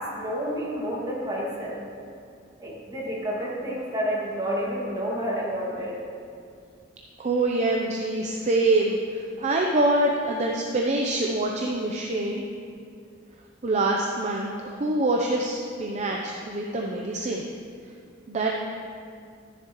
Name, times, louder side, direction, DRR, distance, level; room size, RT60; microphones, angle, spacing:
voice 1, 0.0-1.8 2.6-6.0, equal, 20° right, -5 dB, 1.9 m, -30 dB
voice 2, 7.2-12.4 13.6-17.5 18.3-18.6, right 2 dB, 40° right, 0 dB, 0.6 m, -25 dB
13.0 x 7.3 x 3.0 m, 2.3 s
head